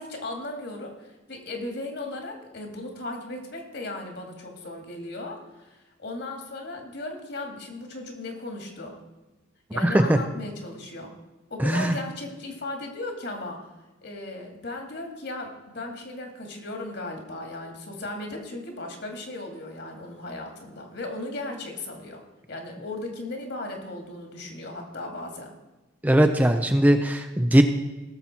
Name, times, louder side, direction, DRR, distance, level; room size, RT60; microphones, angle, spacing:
voice 1, 0.0-9.0 9.7-11.1 11.5-13.7 14.0-22.2 22.5-25.5, left 2 dB, 60° left, 2 dB, 2.3 m, -36 dB
voice 2, 9.8-10.2 11.6-11.9 26.0-27.6, right 1 dB, 10° right, 6 dB, 0.5 m, -19 dB
17.5 x 7.1 x 4.4 m, 1.1 s
head